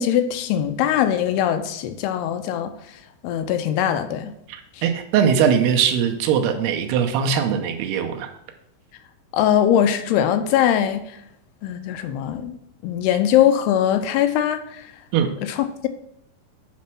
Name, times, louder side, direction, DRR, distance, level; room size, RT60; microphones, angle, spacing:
voice 1, 0.0-2.7 3.2-4.3 4.8-4.9 9.3-11.2 11.6-12.6 12.8-14.9 15.4-15.9, left 10 dB, 85° left, 8 dB, 2.7 m, -21 dB
voice 2, 4.5-8.3 15.1-15.3, right 7 dB, 85° right, 5 dB, 2.8 m, -21 dB
8.6 x 4.2 x 6.0 m, 0.75 s
omnidirectional pair, 4.6 m